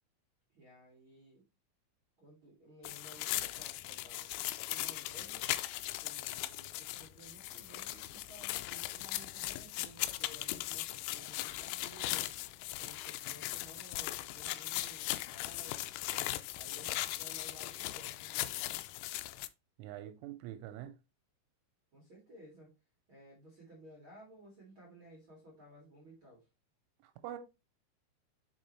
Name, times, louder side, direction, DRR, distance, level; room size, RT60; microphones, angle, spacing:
voice 1, 0.5-1.4 2.2-5.5 6.0-12.3 12.8-15.9 16.5-18.8 21.9-22.7 23.1-26.5, right 1 dB, 55° right, 1.4 m, -56 dB
sound 1, 2.8-19.5, left 17 dB, 85° left, 3.1 m, -39 dB
voice 2, 19.8-20.9 27.0-27.4, right 12 dB, 80° right, 3.2 m, -44 dB
6.9 x 5.2 x 3.2 m
omnidirectional pair, 5.7 m